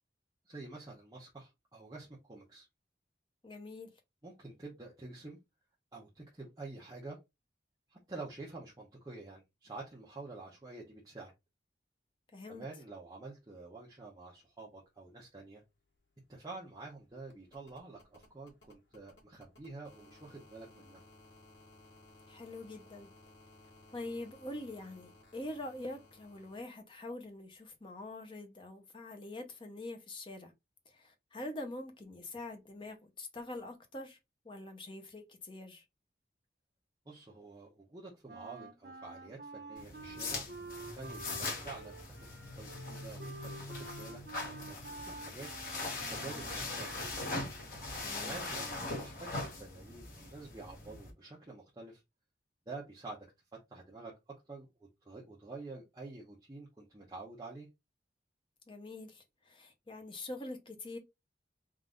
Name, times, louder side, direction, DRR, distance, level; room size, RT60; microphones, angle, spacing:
voice 1, 0.5-2.7 4.2-5.4 5.9-7.2 7.9-11.3 12.5-15.6 16.3-21.0 37.1-40.5 40.8-42.2 42.6-45.5 46.1-47.1 48.2-49.3 49.6-52.0 52.7-53.2 53.7-54.1 54.5-54.7 55.0-57.7, right 3 dB, 20° right, 0.8 m, -48 dB
voice 2, 3.4-3.9 12.3-12.7 22.3-23.1 23.9-30.5 30.9-34.2 34.4-35.8 48.0-48.4 58.7-61.0, left 2 dB, 30° left, 0.8 m, -44 dB
sound 1, 15.7-26.6 28.0-28.1, left 2 dB, 90° left, 1.8 m, -60 dB
Wind instrument woodwind instrument, 38.3-46.9, right 3 dB, 65° right, 0.9 m, -49 dB
sound 2, 39.8-51.1, left 2 dB, 50° left, 1.3 m, -41 dB
3.7 x 2.6 x 3.7 m
head